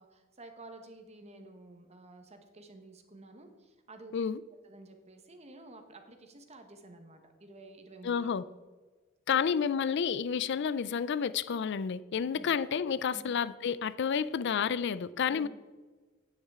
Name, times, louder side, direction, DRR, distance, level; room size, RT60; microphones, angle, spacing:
voice 1, 0.0-4.1 4.6-8.3 12.3-12.5 13.1-13.2 15.3-15.5, right 2 dB, 30° right, 6 dB, 1.2 m, -51 dB
voice 2, 8.0-8.4 9.3-15.5, left 7 dB, 55° left, 17 dB, 0.4 m, -30 dB
9.7 x 9.5 x 3.6 m, 1.3 s
head